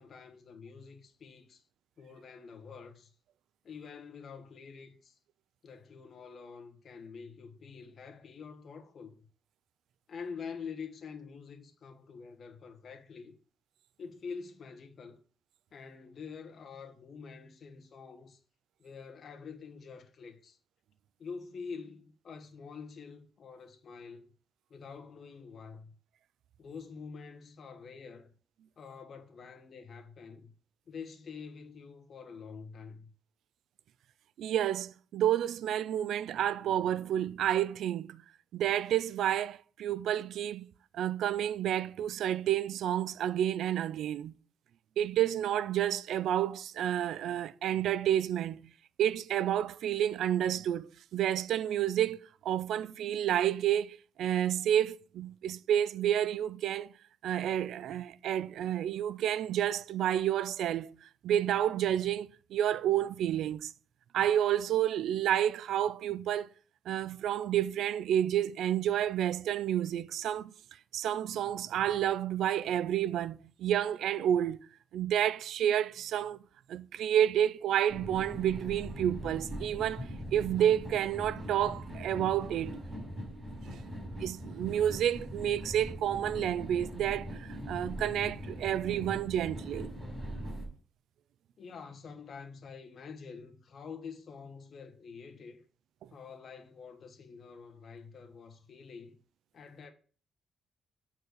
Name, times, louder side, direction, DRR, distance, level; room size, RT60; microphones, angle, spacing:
voice 1, 0.0-1.6 2.0-3.1 3.6-5.1 5.6-9.1 10.1-13.3 14.0-15.2 15.7-18.4 18.8-20.6 21.2-24.3 24.7-25.9 26.6-28.3 28.8-30.5 30.9-33.1 91.6-95.6 96.1-99.2 99.5-99.9, left 5 dB, 55° left, 1.4 m, -46 dB
voice 2, 34.4-38.2 38.5-40.7 40.9-44.3 45.0-48.7 49.0-56.9 57.2-63.7 64.1-66.5 66.9-70.5 70.9-74.6 74.9-76.4 76.7-82.8 84.2-89.9, right 10 dB, 85° right, 0.3 m, -30 dB
sound 1, 77.9-90.7, equal, 15° right, 5.3 m, -41 dB
8.3 x 4.5 x 6.4 m
cardioid pair, 95°, 0 cm